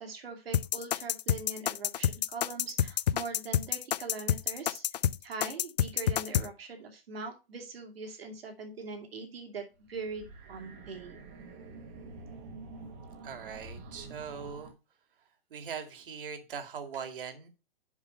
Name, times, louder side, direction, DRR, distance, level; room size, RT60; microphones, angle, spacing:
voice 1, 0.0-4.8 5.2-11.2, right 4 dB, 75° right, 3 dB, 2.6 m, -42 dB
sound 1, 0.5-6.5, left 10 dB, 45° left, 0.4 m, -28 dB
sound 2, 9.8-14.7, right 3 dB, 20° right, 1.0 m, -47 dB
voice 2, 13.2-14.7 15.5-17.5, right 7 dB, 60° right, 7 dB, 2.1 m, -41 dB
7.2 x 5.8 x 5.4 m, 0.29 s
hypercardioid pair, 160°, 30 cm